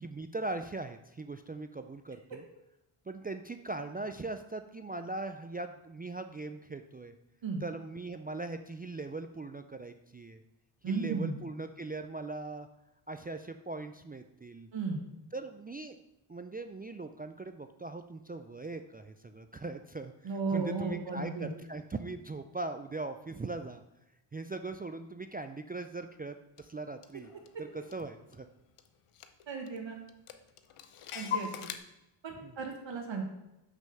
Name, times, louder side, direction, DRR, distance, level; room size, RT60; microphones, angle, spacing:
voice 1, 0.0-2.4 3.1-7.1 7.6-10.4 10.9-12.7 13.1-14.7 15.3-16.0 16.3-23.8 24.3-27.3 27.6-28.5 32.4-32.5, right 3 dB, 20° right, 8 dB, 0.3 m, -40 dB
voice 2, 10.8-11.4 14.7-15.0 20.2-21.5 29.5-30.0 31.1-31.7 32.2-33.2, right 4 dB, 60° right, 2 dB, 1.4 m, -35 dB
Clock, 26.6-26.7 27.0-28.5 28.8-28.9 29.1-29.8 30.1-31.8, left 8 dB, 85° left, 0.8 m, -40 dB
6.2 x 5.6 x 6.7 m, 0.90 s
wide cardioid pair, 100°, 50 cm